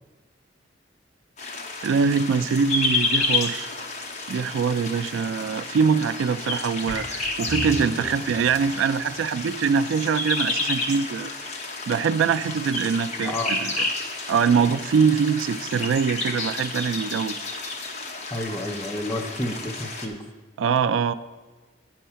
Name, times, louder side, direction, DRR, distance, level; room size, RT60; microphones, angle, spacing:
sound 1, 1.4-20.1, left 3 dB, 40° left, 0.9 m, -30 dB
voice 1, 1.8-3.7 4.3-11.3 11.9-13.9 14.3-17.3 20.6-21.1, right 6 dB, 85° right, 14 dB, 0.3 m, -23 dB
sound 2, 6.9-9.3 10.0-10.1 10.7-10.8, equal, 70° left, 2.2 m, -37 dB
voice 2, 18.3-20.2, left 1 dB, 15° left, 3 dB, 0.6 m, -30 dB
9.1 x 5.5 x 5.6 m, 1.3 s
head